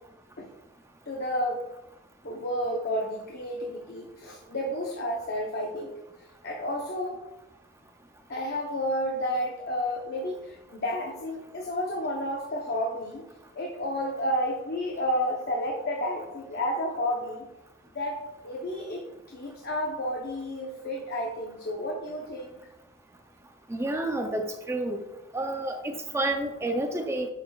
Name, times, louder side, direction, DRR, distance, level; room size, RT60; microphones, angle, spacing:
voice 1, 1.1-1.6 2.2-5.9 6.2-7.2 8.3-13.3 13.5-17.5 17.9-19.0 19.3-22.6, equal, 45° left, 0 dB, 0.8 m, -31 dB
voice 2, 23.7-25.0 25.3-27.3, right 1 dB, 10° right, 5 dB, 0.4 m, -29 dB
8.6 x 6.4 x 2.3 m, 0.97 s
head